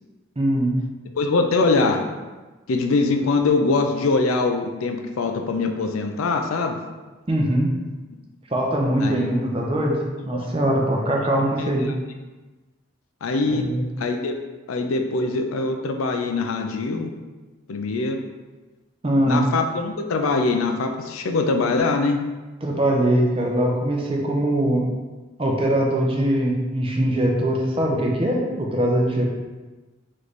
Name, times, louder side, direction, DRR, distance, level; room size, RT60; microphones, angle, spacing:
voice 1, 0.4-0.7 7.3-7.7 8.5-10.0 10.2-11.9 13.5-13.8 19.0-19.4 22.6-24.8 25.4-29.2, right 1 dB, 25° right, 0 dB, 0.5 m, -22 dB
voice 2, 1.1-2.0 2.7-6.8 9.0-9.3 10.3-10.5 11.6-11.9 13.2-13.7 14.0-14.3 14.7-17.1 17.7-18.2 19.3-22.2, left 3 dB, 90° left, 4 dB, 0.5 m, -23 dB
3.2 x 3.1 x 4.0 m, 1.2 s
head